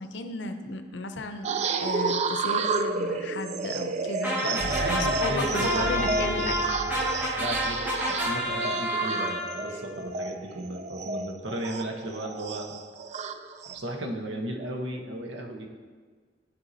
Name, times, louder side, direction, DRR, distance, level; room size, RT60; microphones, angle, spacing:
voice 1, 0.0-4.6 4.9-6.7, left 3 dB, 75° left, 7 dB, 0.6 m, -34 dB
sound 1, 1.4-13.8, right 4 dB, 35° right, 0.3 m, -31 dB
sound 2, 4.2-9.8, equal, 10° right, 1.0 m, -29 dB
voice 2, 4.4-6.0 7.4-12.7 13.7-15.7, right 1 dB, 80° right, 2 dB, 1.0 m, -34 dB
sound 3, 4.6-8.6, left 1 dB, 20° left, 1.8 m, -38 dB
13.0 x 4.6 x 2.7 m, 1.5 s
head